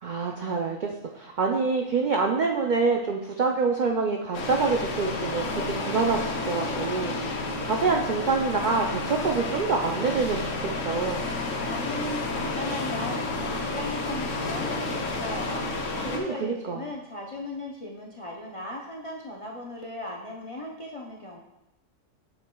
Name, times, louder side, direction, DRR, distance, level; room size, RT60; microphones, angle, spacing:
voice 1, 0.0-11.2 16.1-16.9, right 4 dB, 65° right, 1 dB, 0.4 m, -26 dB
sound 1, 4.3-16.2, left 2 dB, 70° left, 1.2 m, -31 dB
voice 2, 11.7-15.7 16.0-21.4, left 2 dB, 40° left, -1 dB, 0.5 m, -37 dB
7.3 x 6.4 x 2.3 m, 0.90 s
omnidirectional pair, 1.4 m